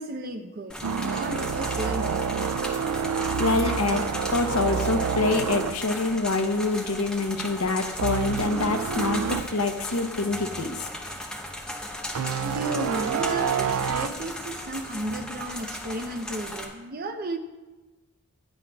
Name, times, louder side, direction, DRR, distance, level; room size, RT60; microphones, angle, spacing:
voice 1, 0.0-2.6 12.4-17.4, right 1 dB, 40° right, 6 dB, 0.7 m, -34 dB
sound 1, 0.7-16.6, left 1 dB, 5° left, 1.0 m, -36 dB
sound 2, 0.8-6.9 7.2-7.4 8.0-9.5 10.0-10.1 12.2-14.1, right 6 dB, 75° right, 0.4 m, -28 dB
voice 2, 3.4-4.0 4.3-10.7, left 3 dB, 75° left, 6 dB, 0.9 m, -26 dB
16.5 x 9.7 x 2.4 m, 1.2 s
head